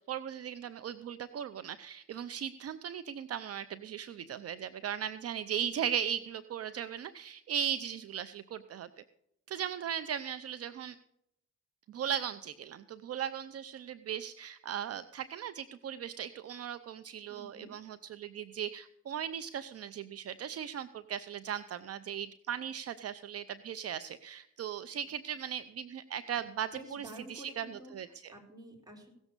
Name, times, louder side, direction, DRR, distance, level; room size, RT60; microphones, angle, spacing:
voice 1, 0.1-8.9 9.5-11.0 11.9-28.3, right 9 dB, 50° right, 12 dB, 0.6 m, -38 dB
voice 2, 17.3-17.7 26.3-26.4 26.7-27.9 28.3-29.1, right 1 dB, 10° right, 0 dB, 4.3 m, -49 dB
17.0 x 7.3 x 6.7 m, 0.80 s
cardioid pair, 90°, 30 cm